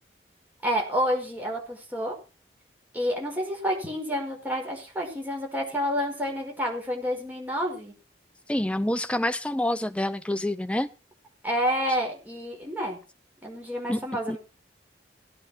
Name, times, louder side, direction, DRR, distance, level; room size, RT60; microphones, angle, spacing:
voice 1, 0.6-2.2 2.9-7.9 11.4-13.0 13.4-14.4, equal, 10° right, 5.1 m, -29 dB
voice 2, 8.5-10.9 13.9-14.4, left 1 dB, 5° left, 0.7 m, -27 dB
17.5 x 9.8 x 4.5 m
head